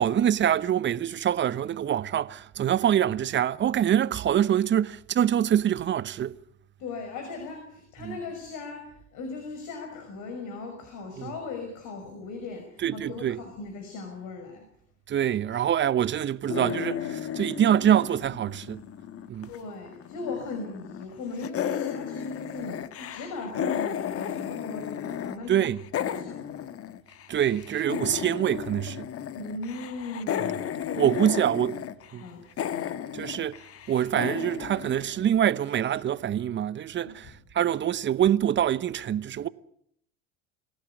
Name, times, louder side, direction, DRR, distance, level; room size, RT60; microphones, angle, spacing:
voice 1, 0.0-6.4 8.0-8.2 11.2-11.3 12.8-13.4 15.1-18.8 19.3-19.5 25.5-25.8 27.3-29.1 31.0-31.8 32.1-32.2 33.1-33.6 33.9-39.5, right 10 dB, 30° right, 0.9 m, -25 dB
voice 2, 6.8-14.7 19.4-25.7 26.0-26.7 29.3-31.2 32.2-32.4 37.1-37.2, left 3 dB, 55° left, 6.1 m, -38 dB
sound 1, 16.5-19.6 19.9-21.1 21.4-25.4 25.6-35.7, left 9 dB, 40° left, 1.4 m, -34 dB
24.5 x 17.0 x 8.3 m
hypercardioid pair, 80°, 37 cm